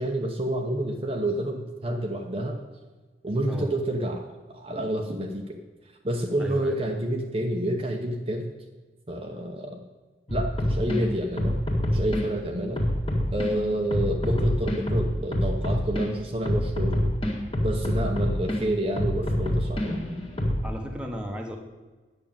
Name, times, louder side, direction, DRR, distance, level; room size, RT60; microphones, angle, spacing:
voice 1, 0.0-2.6 3.2-5.6 6.0-8.5 9.1-9.8 10.3-11.6 11.9-12.8 13.3-17.0 17.6-20.0, right 1 dB, 30° right, 2 dB, 1.0 m, -29 dB
voice 2, 6.4-6.8 20.6-21.6, equal, 5° right, 1 dB, 1.3 m, -34 dB
sound 1, 10.3-11.0 11.4-12.2 12.8-13.5 13.9-16.0 16.4-18.6 19.0-20.7, equal, 30° left, 2.1 m, -26 dB
9.7 x 6.8 x 8.9 m, 1.3 s
head